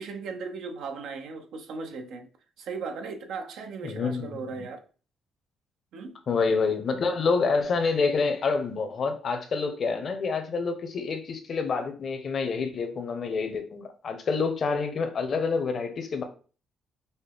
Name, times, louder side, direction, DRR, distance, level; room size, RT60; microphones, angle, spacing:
voice 1, 0.0-2.3 2.6-4.8 5.9-6.2, right 4 dB, 80° right, 0.6 m, -37 dB
voice 2, 3.8-4.4 6.3-16.2, left 4 dB, 55° left, 0.8 m, -27 dB
5.5 x 2.1 x 3.4 m
cardioid pair, 90°, 0 cm